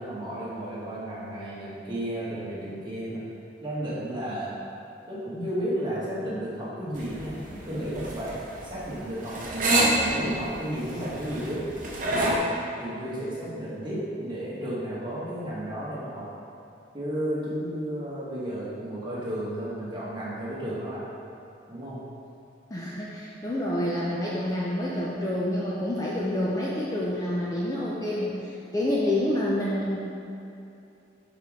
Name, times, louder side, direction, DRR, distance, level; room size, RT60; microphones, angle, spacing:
voice 1, 0.0-3.2 3.6-4.6 5.1-11.6 12.1-12.3 12.8-16.3 16.9-21.1 21.7-22.0, right 1 dB, 25° right, -9 dB, 1.4 m, -33 dB
sound 1, 6.9-12.4, right 1 dB, 45° right, 0.8 m, -27 dB
voice 2, 22.7-30.0, left 1 dB, 20° left, -6 dB, 0.5 m, -28 dB
5.3 x 5.2 x 3.6 m, 2.7 s
head